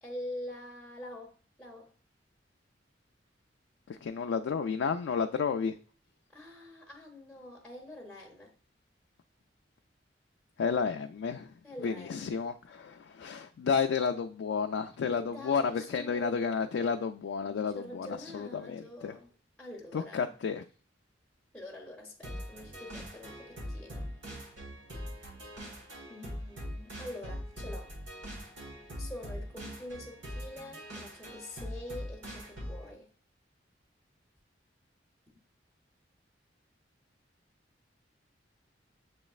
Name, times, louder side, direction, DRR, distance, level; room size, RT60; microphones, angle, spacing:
voice 1, 0.0-1.9 6.3-8.5 11.6-12.5 15.1-16.5 17.7-19.3 19.6-20.3 21.5-24.2 26.1-27.9 28.9-33.1, left 1 dB, 5° left, 0.8 m, -45 dB
voice 2, 3.9-5.7 10.6-11.5 11.8-19.1 19.9-20.6, left 6 dB, 90° left, 0.3 m, -31 dB
sound 1, 22.2-32.9, equal, 85° right, 1.4 m, -42 dB
6.9 x 3.1 x 2.4 m
head